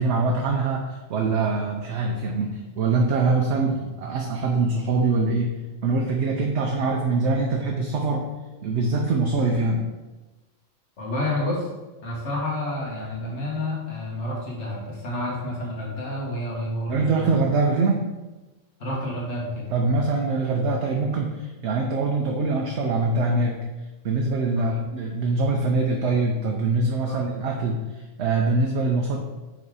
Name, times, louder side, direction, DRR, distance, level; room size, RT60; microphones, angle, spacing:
voice 1, 0.0-5.6 5.8-8.2 8.6-9.9 16.9-18.1 19.7-23.6 24.0-27.8 28.2-29.2, right 3 dB, 65° right, 1 dB, 0.9 m, -23 dB
voice 2, 11.0-11.7 12.0-17.4 18.8-19.7 20.8-21.0 24.6-24.8 27.1-27.3, left 1 dB, 65° left, -3 dB, 1.8 m, -29 dB
5.0 x 4.1 x 4.7 m, 1.1 s
omnidirectional pair, 1.3 m